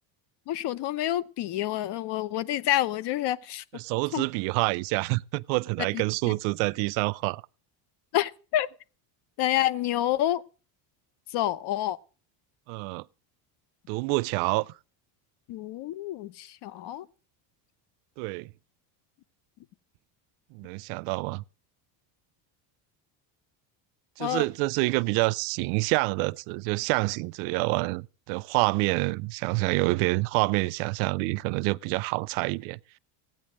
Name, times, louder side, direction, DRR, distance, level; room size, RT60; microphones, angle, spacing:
voice 1, 0.5-3.6 4.1-4.2 8.1-8.7 9.4-10.4 11.3-12.0 15.5-17.1 24.2-24.4, left 13 dB, 55° left, 0.9 m, -28 dB
voice 2, 3.7-7.4 12.7-13.0 13.9-14.7 18.2-18.5 20.5-21.4 24.2-32.8, right 25 dB, 80° right, 0.6 m, -27 dB
15.5 x 9.2 x 6.3 m
cardioid pair, 120°, 48 cm